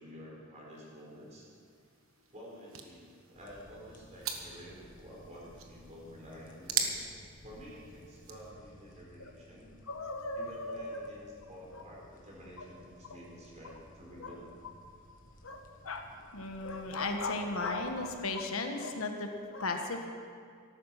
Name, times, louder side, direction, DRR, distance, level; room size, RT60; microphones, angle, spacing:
voice 1, 0.0-1.4 2.3-7.1 7.4-9.7 10.3-14.5, equal, 35° right, -4 dB, 4.3 m, -50 dB
sound 1, 0.7-8.5, right 6 dB, 70° right, 1.4 m, -42 dB
sound 2, 3.3-18.3, equal, 40° left, 1.7 m, -57 dB
voice 2, 9.9-11.1 11.7-11.8 12.6-12.7 13.6-13.8 14.2-14.4 15.4-16.1 16.3-20.1, left 3 dB, 80° left, 4 dB, 1.3 m, -36 dB
14.0 x 12.5 x 5.9 m, 2.2 s
head